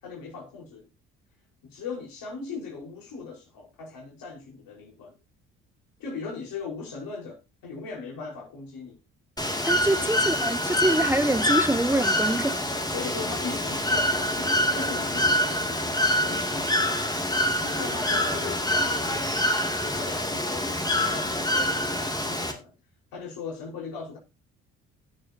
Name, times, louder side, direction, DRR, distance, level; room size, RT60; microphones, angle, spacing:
voice 1, 0.0-0.9 1.6-5.1 6.0-9.0 9.9-10.2 12.9-16.9 17.6-22.7 23.1-24.2, left 4 dB, 70° left, 5.0 m, -39 dB
Bird / Water, 9.4-22.5, left 1 dB, 10° left, 2.5 m, -26 dB
voice 2, 9.7-12.7, right 1 dB, 5° right, 0.6 m, -25 dB
18.0 x 6.8 x 2.9 m
hypercardioid pair, 55°, 35 cm